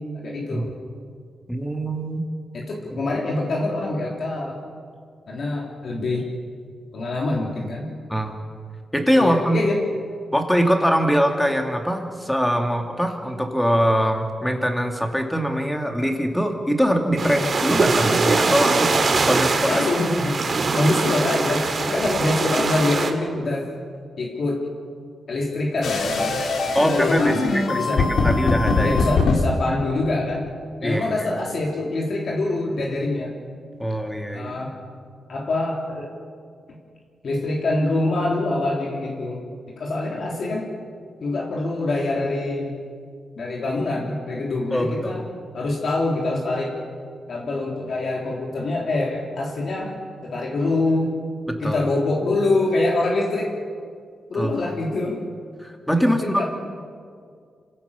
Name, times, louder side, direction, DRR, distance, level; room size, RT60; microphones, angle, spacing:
voice 1, 0.2-0.7 2.5-4.6 5.3-6.3 6.9-7.9 9.1-9.8 17.2-17.5 19.7-20.4 20.7-23.7 24.2-24.7 25.3-26.4 26.8-28.1 28.8-30.5 30.8-33.3 34.3-34.8 35.3-36.1 37.2-39.4 39.8-40.7 41.2-42.7 43.4-45.3 45.5-46.7 47.3-49.9 50.2-51.1 51.6-53.5 54.3-55.2 56.0-56.5, left 2 dB, 60° left, -2 dB, 3.4 m, -25 dB
voice 2, 1.5-2.2 8.1-8.4 8.9-9.6 10.3-19.8 26.7-29.0 30.8-31.3 33.8-34.5 44.7-45.2 51.5-51.8 54.3-54.5 55.6-56.5, equal, 5° left, 3 dB, 2.6 m, -23 dB
sound 1, 17.2-23.1, right 3 dB, 45° right, 2.4 m, -22 dB
sound 2, 25.8-29.4, left 3 dB, 75° left, 3.0 m, -22 dB
28.0 x 16.5 x 7.2 m, 2.1 s
cardioid pair, 115°, 0 cm